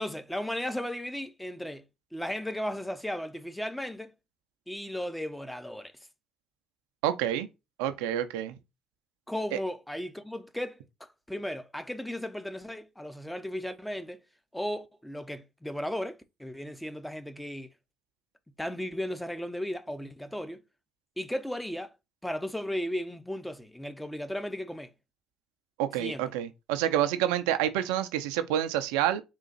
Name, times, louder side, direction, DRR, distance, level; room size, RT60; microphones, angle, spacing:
voice 1, 0.0-1.8 2.1-4.1 4.7-5.9 9.3-14.2 14.5-17.7 18.6-20.6 21.2-21.9 22.2-24.9 26.0-26.2, equal, 5° left, 0.7 m, -35 dB
voice 2, 7.0-7.5 7.8-8.6 9.5-9.6 25.8-29.2, right 11 dB, 85° right, 0.5 m, -28 dB
3.9 x 2.5 x 4.0 m
hypercardioid pair, 60°, 0 cm